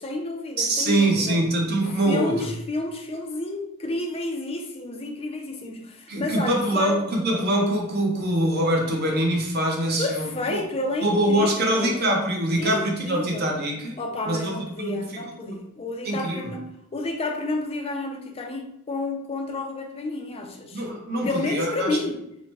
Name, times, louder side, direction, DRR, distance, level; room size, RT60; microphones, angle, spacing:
voice 1, 0.0-1.5 2.1-7.0 10.0-12.0 12.6-13.5 14.0-16.6 16.9-20.9 21.2-22.2, left 2 dB, 25° left, 2 dB, 0.4 m, -30 dB
voice 2, 0.6-2.5 6.1-10.6 11.0-14.0 14.3-15.0 16.0-16.5 20.7-22.0, right 1 dB, 50° right, 0 dB, 0.6 m, -24 dB
2.8 x 2.1 x 3.0 m, 0.82 s
head